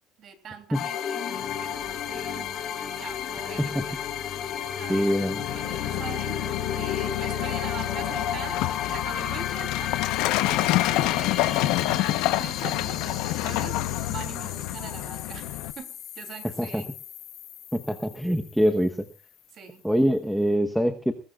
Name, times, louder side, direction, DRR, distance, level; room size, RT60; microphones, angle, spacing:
voice 1, 0.2-1.3 1.6-4.0 4.4-10.0 10.4-17.0 19.5-19.8, right 7 dB, 40° right, 7 dB, 3.1 m, -43 dB
sound 1, 0.7-19.2, left 9 dB, 45° left, 3.8 m, -33 dB
voice 2, 4.9-5.4 16.6-16.8 17.7-19.1 19.8-21.1, equal, ahead, 5 dB, 1.1 m, -24 dB
Truck, 5.5-15.7, left 16 dB, 80° left, 1.0 m, -28 dB
20.5 x 19.5 x 2.4 m, 0.36 s
cardioid pair, 155°, 0 cm